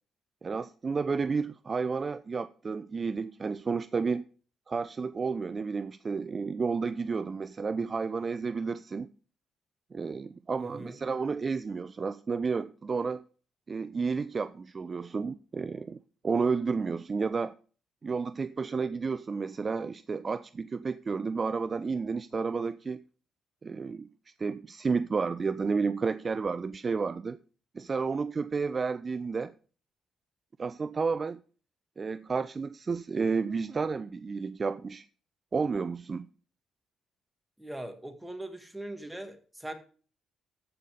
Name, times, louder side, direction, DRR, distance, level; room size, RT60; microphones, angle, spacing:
voice 1, 0.4-4.3 4.7-9.1 9.9-13.2 13.7-17.5 18.0-23.0 23.6-24.1 24.4-27.4 27.7-29.5 30.6-31.4 32.0-35.0 35.5-36.3, right 5 dB, 35° right, 0.4 m, -31 dB
voice 2, 10.6-11.0 37.6-39.7, right 1 dB, 5° right, 1.8 m, -41 dB
14.0 x 5.5 x 5.0 m
cardioid pair, 90°, 0 cm